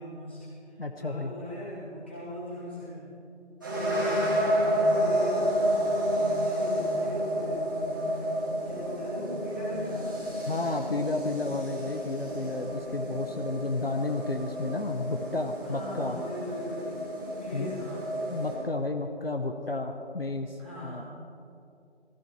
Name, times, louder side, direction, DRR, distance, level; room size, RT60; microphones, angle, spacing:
voice 1, 0.0-3.1 3.7-5.5 6.3-7.6 8.7-10.1 15.1-15.2 15.6-17.0 17.3-18.1 20.6-21.0, equal, 10° left, -10 dB, 2.3 m, -39 dB
voice 2, 0.8-1.3 10.5-16.2 17.5-17.7 18.3-21.0, left 2 dB, 55° left, 4 dB, 1.1 m, -32 dB
sound 1, 3.6-18.6, equal, 15° right, 3.0 m, -30 dB
20.0 x 15.0 x 4.7 m, 2.5 s
figure-of-eight pair, 180°, 35 cm